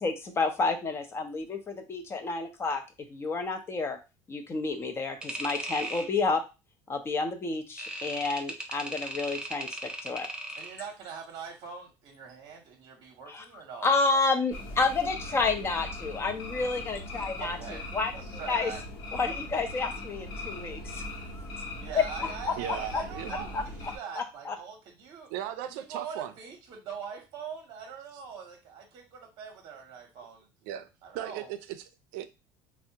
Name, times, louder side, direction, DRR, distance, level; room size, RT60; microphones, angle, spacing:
voice 1, 0.0-2.8 3.1-4.0 4.3-6.4 6.9-9.7 10.0-10.3 13.3-13.4 13.8-17.6 17.9-18.1 18.5-18.7 19.1-21.0 21.3-21.5 21.9-22.0 22.5-22.6 22.9-23.0 23.5-23.6 24.2-24.6, left 4 dB, 25° left, 0.6 m, -29 dB
sound 1, 5.2-6.1 7.8-10.8, right 1 dB, 10° right, 0.6 m, -37 dB
voice 2, 10.6-14.2 17.4-17.8 18.1-18.8 21.8-25.3 25.7-30.5 31.0-31.5, right 6 dB, 55° right, 0.7 m, -42 dB
sound 2, 14.5-24.0, left 2 dB, 60° left, 0.8 m, -39 dB
voice 3, 22.6-23.5 25.3-26.3 30.6-30.9 31.1-32.3, right 11 dB, 85° right, 0.4 m, -37 dB
3.4 x 2.0 x 2.8 m
supercardioid pair, 110°, 9 cm